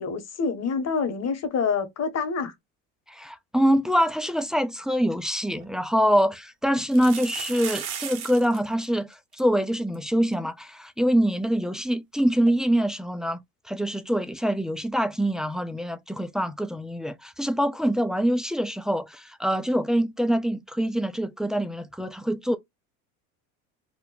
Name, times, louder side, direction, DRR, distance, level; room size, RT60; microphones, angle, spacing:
voice 1, 0.0-2.5, left 5 dB, 40° left, 1.1 m, -27 dB
voice 2, 3.1-13.4 13.7-22.6, equal, ahead, 0.3 m, -25 dB
sound 1, 5.2-5.3 5.6-5.7 6.8-8.6 8.8-8.9 9.1-9.4 9.9-10.0 10.3-10.4 12.5-12.6, right 8 dB, 75° right, 1.3 m, -36 dB
3.0 x 2.1 x 3.8 m
supercardioid pair, 90°, 41 cm